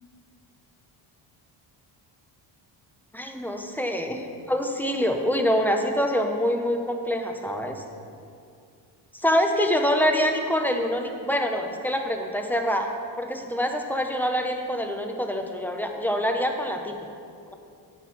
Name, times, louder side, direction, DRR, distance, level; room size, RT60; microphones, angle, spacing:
voice 1, 3.1-4.2 4.5-7.8 9.1-12.9 13.2-17.0, equal, 5° left, 3 dB, 0.5 m, -25 dB
10.5 x 6.1 x 5.8 m, 2.4 s
cardioid pair, 170°, 46 cm